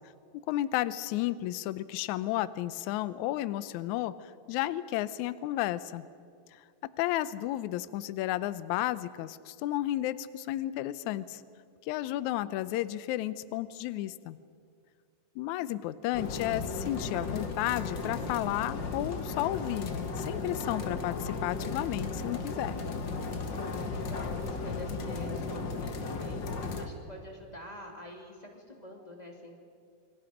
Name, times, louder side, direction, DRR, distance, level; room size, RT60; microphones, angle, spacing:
voice 1, 0.5-6.0 6.5-6.6 7.0-11.4 11.8-14.4 15.4-22.8, left 14 dB, 75° left, 15 dB, 1.8 m, -32 dB
sound 1, 16.1-26.9, left 4 dB, 50° left, 1.4 m, -35 dB
voice 2, 23.5-29.6, left 1 dB, 15° left, 0 dB, 2.2 m, -46 dB
28.0 x 24.5 x 5.1 m, 2.2 s
omnidirectional pair, 3.9 m